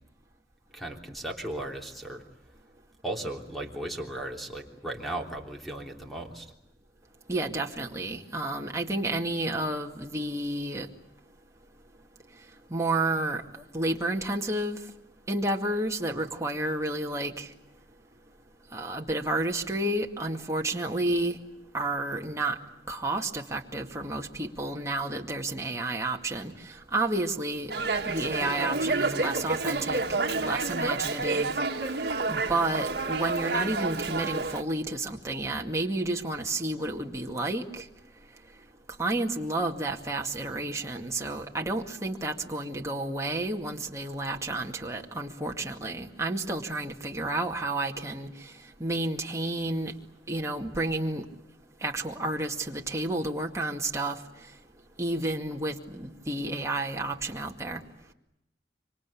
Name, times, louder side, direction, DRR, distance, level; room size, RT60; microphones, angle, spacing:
voice 1, 0.7-2.2 3.0-6.5, right 1 dB, ahead, 1 dB, 3.3 m, -36 dB
voice 2, 7.3-10.9 12.7-14.8 15.3-17.5 18.7-21.4 21.7-22.6 22.9-27.7 28.1-31.5 32.3-37.9 39.0-48.5 48.8-49.9 50.3-51.3 51.8-54.2 55.0-57.8, right 2 dB, 15° right, 1 dB, 2.2 m, -31 dB
Dog, 27.7-34.6, right 3 dB, 65° right, 1.7 m, -29 dB
26.0 x 25.5 x 8.5 m, 0.85 s
head